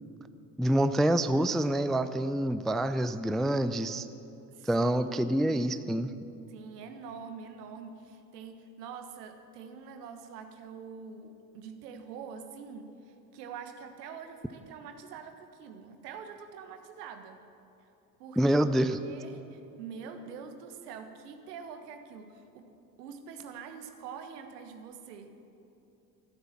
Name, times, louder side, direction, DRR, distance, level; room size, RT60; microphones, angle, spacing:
voice 1, 0.6-4.1 4.6-6.1 18.4-19.0, right 1 dB, ahead, 11 dB, 0.3 m, -27 dB
voice 2, 4.5-5.8 6.5-17.4 18.2-18.4 18.8-22.7 23.0-25.3, right 6 dB, 75° right, 7 dB, 1.4 m, -45 dB
13.0 x 12.5 x 7.3 m, 2.8 s
hypercardioid pair, 60°, 47 cm